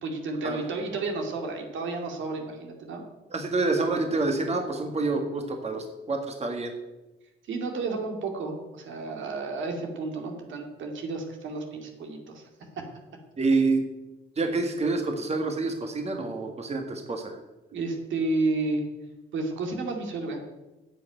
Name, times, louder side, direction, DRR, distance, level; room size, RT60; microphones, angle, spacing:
voice 1, 0.0-3.0 7.5-12.5 12.8-12.9 17.7-18.8 19.3-20.4, right 3 dB, 75° right, 3 dB, 2.4 m, -31 dB
voice 2, 3.3-6.7 13.4-13.8 14.4-17.4, right 3 dB, 30° right, 4 dB, 1.8 m, -27 dB
10.0 x 6.8 x 9.2 m, 1.1 s
cardioid pair, 90°, 20 cm